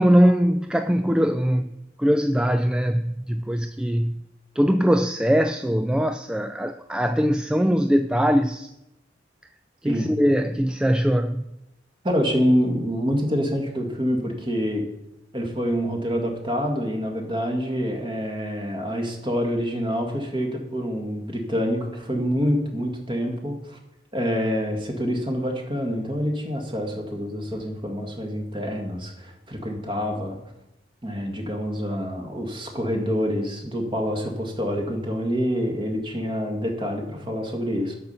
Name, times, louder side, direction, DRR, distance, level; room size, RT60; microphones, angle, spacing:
voice 1, 0.0-1.7 2.0-4.2 4.6-8.7 9.8-11.4, equal, 5° right, 0.3 m, -21 dB
voice 2, 12.0-14.8 15.3-23.8 24.1-30.4 31.0-37.9, equal, 30° right, 1.9 m, -26 dB
12.0 x 5.7 x 6.8 m
head